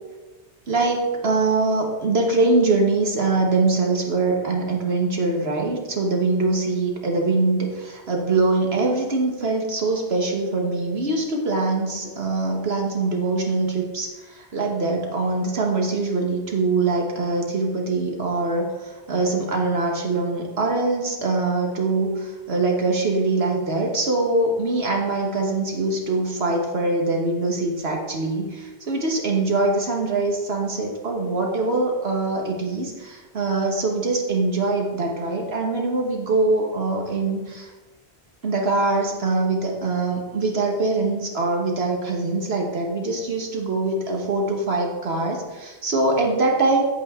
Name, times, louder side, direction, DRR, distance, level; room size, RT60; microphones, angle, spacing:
voice 1, 0.7-37.7 38.4-46.8, right 3 dB, 65° right, 1 dB, 1.4 m, -23 dB
9.3 x 8.6 x 3.6 m, 1.2 s
omnidirectional pair, 1.1 m